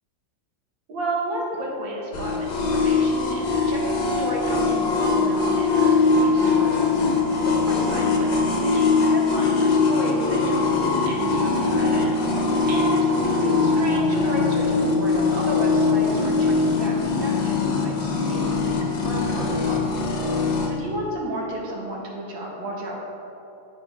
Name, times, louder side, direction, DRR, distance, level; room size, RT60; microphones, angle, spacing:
voice 1, 0.9-19.9 20.2-23.0, right 1 dB, 80° right, -3 dB, 2.6 m, -32 dB
sound 1, 2.1-20.7, left 4 dB, 80° left, 2.0 m, -21 dB
9.7 x 6.5 x 5.7 m, 2.9 s
omnidirectional pair, 2.0 m